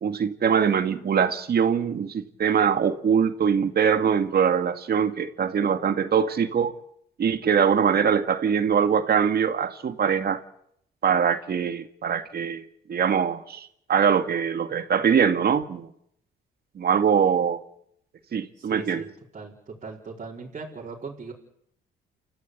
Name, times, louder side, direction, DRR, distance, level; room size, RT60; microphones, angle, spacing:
voice 1, 0.0-6.7 7.2-10.4 11.0-12.6 12.9-15.9 16.8-17.6 18.3-19.0, right 7 dB, 50° right, 8 dB, 2.1 m, -23 dB
voice 2, 18.6-19.1 19.3-21.3, right 4 dB, 35° right, -4 dB, 4.9 m, -39 dB
29.5 x 14.5 x 8.5 m, 0.73 s
cardioid pair, 90°, 20 cm